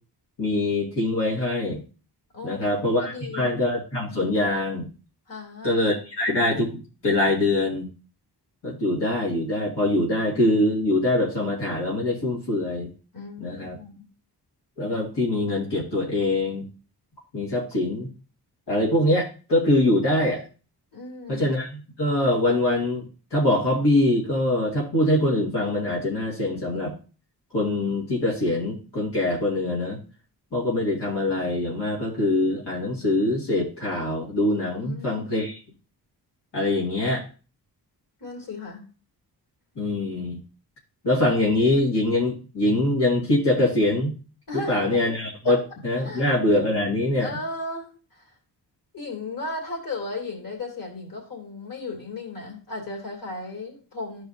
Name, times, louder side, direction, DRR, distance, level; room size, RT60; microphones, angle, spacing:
voice 1, 0.4-1.8 2.4-4.9 5.6-7.9 8.6-12.9 13.4-13.8 14.8-16.6 17.3-18.1 18.7-20.4 21.3-23.0 23.3-26.9 27.5-30.0 30.5-35.6 36.5-37.2 39.8-40.4 41.0-44.1 44.7-47.3, left 1 dB, 80° left, -5 dB, 2.4 m, -23 dB
voice 2, 2.3-3.5 5.3-5.8 13.1-14.1 20.9-21.4 34.8-35.2 38.2-38.9 44.5-44.9 45.5-45.6 46.0-46.3 47.2-48.3 48.9-54.2, left 2 dB, 55° left, 0 dB, 2.8 m, -35 dB
13.5 x 4.8 x 2.7 m, 0.35 s
wide cardioid pair, 120°, 40 cm